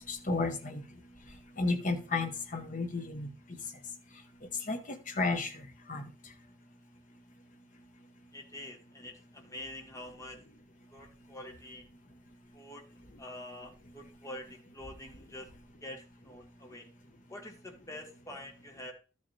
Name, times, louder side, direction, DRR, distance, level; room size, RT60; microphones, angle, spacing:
voice 1, 0.1-0.8 1.6-3.3 4.7-4.8 5.2-5.5 5.9-6.0, left 3 dB, 40° left, 5 dB, 1.3 m, -32 dB
voice 2, 8.3-10.4 10.9-11.9 12.5-12.8 13.2-15.5 15.8-16.9 17.3-18.9, left 1 dB, 15° left, 2 dB, 1.3 m, -46 dB
12.5 x 6.4 x 3.4 m, 0.35 s
head